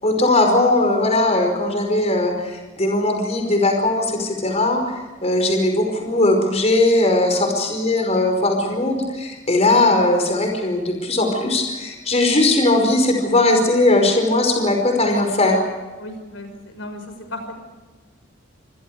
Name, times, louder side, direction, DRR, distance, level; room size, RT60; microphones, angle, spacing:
voice 1, 0.0-15.6, left 2 dB, 35° left, 3 dB, 5.2 m, -19 dB
voice 2, 16.0-17.5, left 1 dB, 75° left, 6 dB, 6.2 m, -35 dB
29.5 x 27.0 x 5.0 m, 1.3 s
head